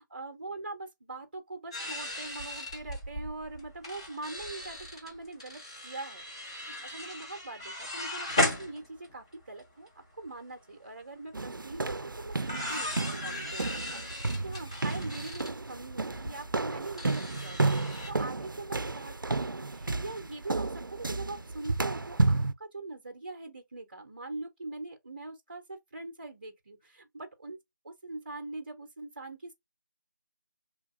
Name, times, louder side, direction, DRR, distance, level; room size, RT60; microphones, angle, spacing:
voice 1, 0.1-6.2 6.6-9.9 10.2-17.7 18.0-19.2 19.4-27.6 27.8-29.5, right 2 dB, 30° right, 0.6 m, -42 dB
sound 1, 1.7-9.3 9.6-9.7 9.9-10.3 11.7-11.8 12.3-18.1, left 1 dB, 15° left, 0.5 m, -37 dB
sound 2, 11.3-22.5, right 3 dB, 85° right, 0.4 m, -32 dB
2.8 x 2.5 x 2.5 m
figure-of-eight pair, 160°, 11 cm